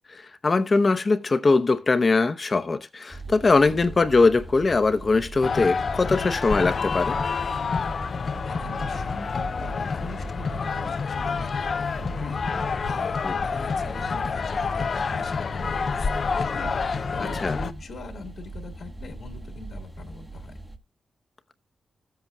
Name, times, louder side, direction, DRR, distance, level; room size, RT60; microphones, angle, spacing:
voice 1, 0.1-7.2 13.2-13.3 17.4-17.6, left 3 dB, 40° left, 0.8 m, -21 dB
sound 1, 3.1-20.8, right 2 dB, 10° right, 1.0 m, -40 dB
sound 2, 5.4-17.7, left 5 dB, 55° left, 0.4 m, -28 dB
voice 2, 8.3-11.9 12.2-16.2 16.5-20.5, left 4 dB, 75° left, 2.2 m, -42 dB
14.5 x 7.8 x 2.3 m
cardioid pair, 75°, 0 cm